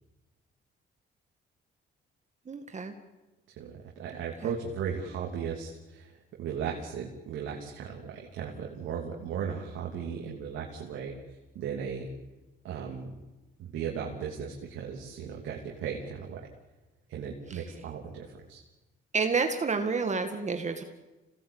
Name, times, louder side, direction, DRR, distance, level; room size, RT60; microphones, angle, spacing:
voice 1, 2.5-2.9 4.4-4.5 17.5-17.6 19.1-20.8, right 4 dB, 35° right, 6 dB, 2.1 m, -29 dB
voice 2, 3.6-11.1 11.5-12.1 12.6-13.1 13.6-16.5 17.1-18.6, right 7 dB, 85° right, -1 dB, 3.2 m, -36 dB
26.5 x 18.5 x 8.9 m, 1.1 s
cardioid pair, 90°, 20 cm